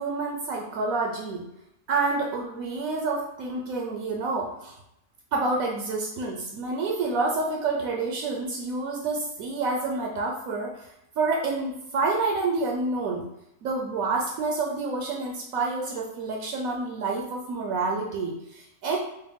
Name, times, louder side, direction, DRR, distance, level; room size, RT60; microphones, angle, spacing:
voice 1, 0.0-1.4 1.9-4.7 5.3-10.8 11.2-13.2 13.6-19.0, right 3 dB, 75° right, 1 dB, 1.0 m, -28 dB
4.6 x 2.1 x 3.6 m, 0.82 s
omnidirectional pair, 1.5 m